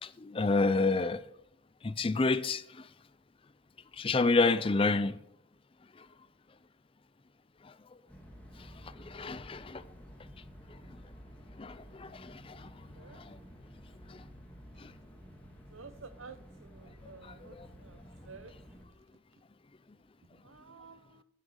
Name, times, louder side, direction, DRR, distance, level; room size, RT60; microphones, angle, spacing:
voice 1, 0.0-1.2 1.8-2.8 4.0-5.2 7.6-7.7 9.1-9.8 11.6-12.7 13.2-13.4 14.1-14.2 14.8-14.9 17.2-17.7, left 3 dB, 25° left, 0.4 m, -29 dB
sound 1, 8.1-18.8, equal, 10° left, 1.8 m, -52 dB
voice 2, 15.7-16.4 16.7-17.6 17.8-18.0 18.2-18.5 20.4-21.2, right 5 dB, 75° right, 0.9 m, -51 dB
9.7 x 9.0 x 6.5 m
head